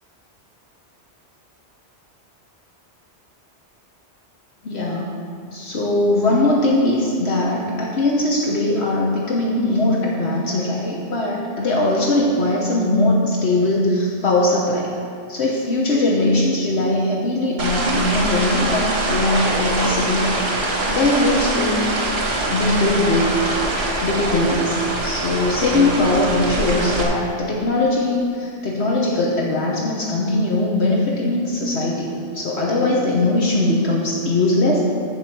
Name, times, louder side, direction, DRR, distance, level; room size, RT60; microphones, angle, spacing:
voice 1, 4.6-5.2 5.5-14.9 15.3-20.3 20.9-21.9 22.5-23.4 24.0-34.8, left 2 dB, 65° left, -3 dB, 1.4 m, -20 dB
sound 1, 17.6-27.0, right 2 dB, 65° right, 1.9 m, -23 dB
14.0 x 5.1 x 6.1 m, 2.3 s
omnidirectional pair, 1.2 m